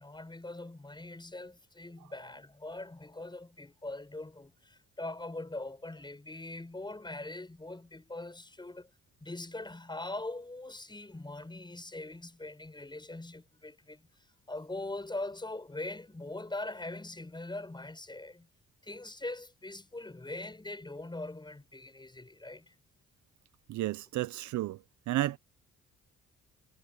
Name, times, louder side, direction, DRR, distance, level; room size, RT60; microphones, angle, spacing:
voice 1, 0.0-8.9 9.2-14.1 14.5-18.5 18.8-22.7, left 2 dB, 15° left, 7.3 m, -42 dB
voice 2, 23.7-24.8 25.1-25.4, right 15 dB, 75° right, 0.6 m, -32 dB
cardioid pair, 90°, 30 cm